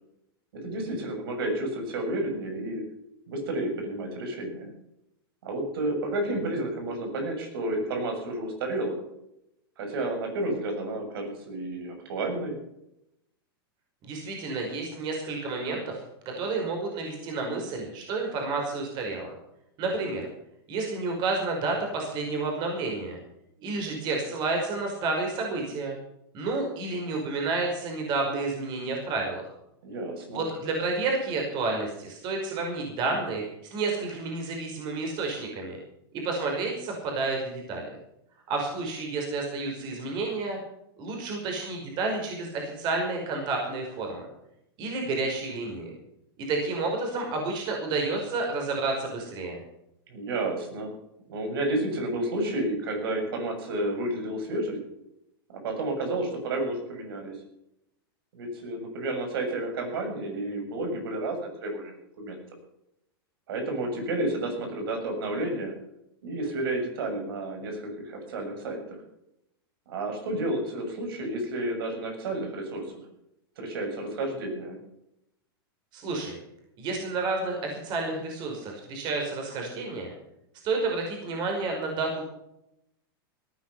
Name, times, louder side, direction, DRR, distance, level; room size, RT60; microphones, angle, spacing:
voice 1, 0.6-2.8 3.3-4.7 5.4-9.0 9.8-12.6 29.8-30.4 50.1-50.9 51.3-54.8 55.5-57.4 58.3-62.4 63.5-65.7 66.2-69.0 69.9-72.9 73.6-74.8, right 1 dB, 70° right, 3 dB, 7.2 m, -31 dB
voice 2, 14.0-16.0 16.4-19.3 19.8-20.2 20.7-23.2 23.6-26.0 26.3-29.5 30.3-33.4 33.7-35.8 36.1-37.9 38.5-40.6 41.0-44.3 44.8-45.9 46.5-49.6 75.9-76.4 76.8-80.1 80.6-82.3, right 3 dB, 35° right, 1 dB, 5.4 m, -30 dB
18.0 x 11.5 x 5.7 m, 0.81 s
supercardioid pair, 145°, 13 cm